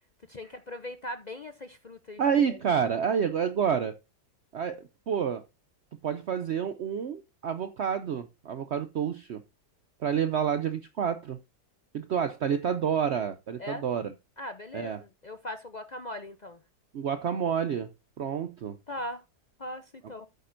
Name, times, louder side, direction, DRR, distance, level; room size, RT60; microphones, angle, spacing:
voice 1, 0.3-2.2 2.5-2.6 13.6-13.8 14.4-16.6 18.9-19.2 19.6-20.3, left 1 dB, 55° left, 0.4 m, -39 dB
voice 2, 2.2-4.0 4.5-5.4 6.0-9.4 10.0-11.4 11.9-14.1 14.7-15.0 16.9-17.9 18.2-18.8, right 7 dB, 60° right, 0.7 m, -29 dB
12.0 x 8.6 x 2.6 m
omnidirectional pair, 1.7 m